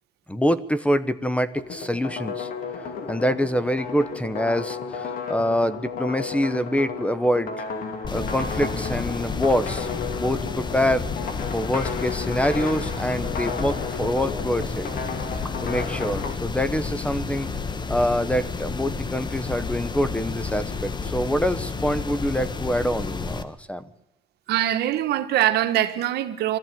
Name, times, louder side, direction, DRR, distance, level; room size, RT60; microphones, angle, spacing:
voice 1, 0.3-2.5 3.1-7.5 8.1-9.9 10.1-11.1 11.5-14.9 15.6-17.5 17.9-23.8, equal, 5° left, 0.9 m, -25 dB
sound 1, 1.6-16.3, left 5 dB, 55° left, 2.8 m, -33 dB
sound 2, 8.0-23.4, left 4 dB, 25° left, 1.3 m, -31 dB
voice 2, 24.5-26.6, right 12 dB, 75° right, 1.5 m, -23 dB
22.0 x 14.0 x 9.2 m
cardioid pair, 110°, 17 cm